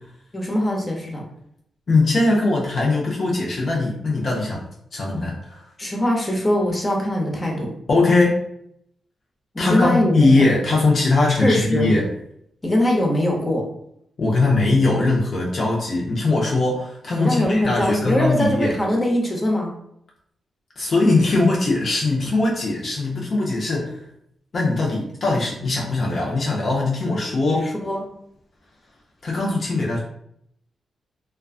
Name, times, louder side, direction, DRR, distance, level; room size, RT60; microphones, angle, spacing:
voice 1, 0.3-1.2 5.8-7.7 9.5-10.4 11.4-11.9 12.6-13.6 17.1-19.7 27.5-28.0, left 1 dB, 25° left, -1 dB, 0.7 m, -22 dB
voice 2, 1.9-4.6 4.9-5.6 7.9-8.4 9.6-12.1 14.2-18.7 20.8-24.0 24.5-27.7 29.2-30.0, left 2 dB, 55° left, -3 dB, 0.5 m, -20 dB
2.3 x 2.2 x 2.3 m, 0.73 s
cardioid pair, 55°, 0 cm